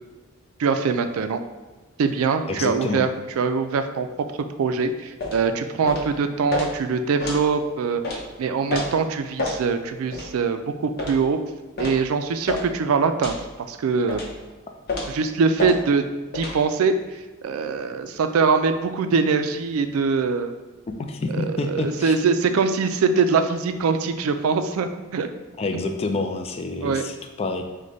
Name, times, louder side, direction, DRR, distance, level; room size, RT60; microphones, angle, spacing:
voice 1, 0.6-1.4 2.0-3.1 3.4-4.1 4.6-11.4 11.8-13.4 13.7-14.2 15.1-16.1 16.3-20.5 21.3-25.3 26.8-27.0, right 5 dB, 80° right, 9 dB, 0.4 m, -23 dB
voice 2, 2.5-3.1 21.0-22.2 25.6-27.6, left 3 dB, 30° left, 5 dB, 0.3 m, -28 dB
sound 1, 5.2-5.4 5.9-6.1 6.5-6.7 7.2-7.4 8.0-8.2 8.7-8.9 9.4-9.6 10.1-10.3 11.0-11.2 11.8-12.0 12.5-12.7 13.2-13.4 14.1-14.3 14.9-15.2 15.6-15.8 16.3-16.6, left 2 dB, 50° left, 0.7 m, -28 dB
4.8 x 2.2 x 3.9 m, 1.2 s
head